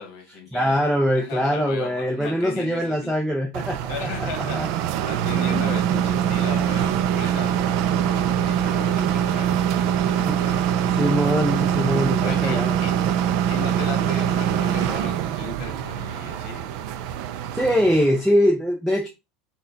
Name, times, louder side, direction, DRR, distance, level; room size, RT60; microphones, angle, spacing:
voice 1, 0.0-0.8 1.1-3.2 3.9-4.7 5.0-7.6 7.9-10.6 12.2-13.0 13.5-16.7, left 6 dB, 45° left, 1.2 m, -37 dB
voice 2, 0.5-4.7 5.5-5.6 10.3-10.4 10.8-12.8 17.5-19.1, equal, ahead, 0.6 m, -23 dB
sound 1, 3.5-18.2, right 9 dB, 50° right, 0.4 m, -23 dB
5.7 x 2.2 x 3.8 m
supercardioid pair, 170°, 0 cm